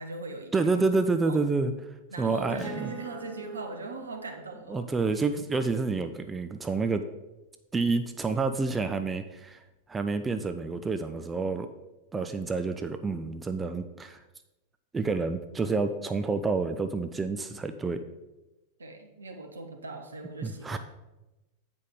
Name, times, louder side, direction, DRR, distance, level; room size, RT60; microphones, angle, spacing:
voice 1, 0.0-0.8 1.2-1.4 2.1-4.9 18.8-20.8, right 3 dB, 75° right, 4 dB, 1.0 m, -39 dB
voice 2, 0.5-1.7 2.2-2.9 4.7-7.0 7.7-9.6 9.9-11.7 12.1-14.2 14.9-18.0 20.4-20.8, right 3 dB, 15° right, 8 dB, 0.4 m, -28 dB
Acoustic guitar, 2.6-7.5, right 3 dB, 5° left, 1.7 m, -47 dB
8.3 x 5.2 x 4.7 m, 1.0 s
figure-of-eight pair, 90°, 0 cm